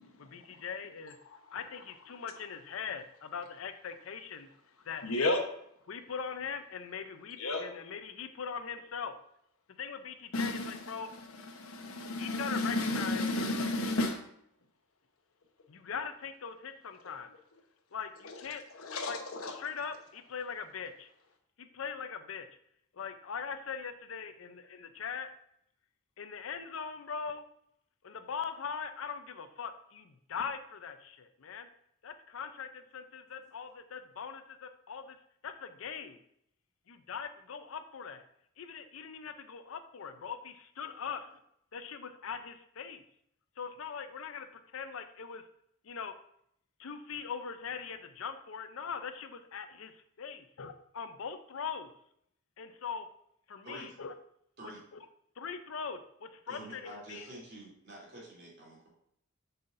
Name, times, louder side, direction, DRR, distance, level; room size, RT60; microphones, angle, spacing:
voice 1, 0.2-1.2 1.5-4.5 4.9-5.1 5.9-9.1 9.8-11.1 12.2-13.2 15.7-17.3 17.9-18.7 19.1-19.2 19.5-21.1 21.6-22.5 22.9-25.3 26.2-27.4 28.0-31.7 32.0-35.2 35.4-36.2 36.9-38.2 38.6-41.4 41.7-43.0 43.6-44.5 44.7-45.4 45.8-46.1 46.8-51.9 52.6-53.1 53.5-54.1 55.4-57.3, left 6 dB, 70° left, 10 dB, 0.5 m, -41 dB
voice 2, 5.0-5.4 7.4-7.6 10.3-11.0 11.3-14.2 18.2-18.3 18.7-19.5, left 2 dB, 90° left, 5 dB, 1.0 m, -32 dB
voice 3, 56.5-58.9, right 1 dB, 50° right, -4 dB, 2.8 m, -48 dB
7.8 x 5.6 x 2.6 m, 0.72 s
head